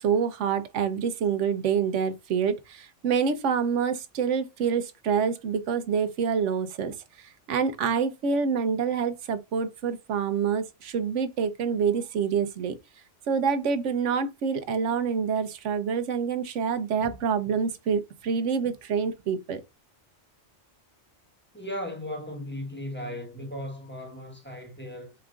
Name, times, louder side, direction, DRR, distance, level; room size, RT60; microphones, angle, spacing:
voice 1, 0.0-12.7 13.3-19.6, right 6 dB, 85° right, 1.1 m, -27 dB
voice 2, 21.5-25.1, left 1 dB, 10° left, 1.2 m, -36 dB
4.8 x 4.4 x 2.4 m
omnidirectional pair, 1.2 m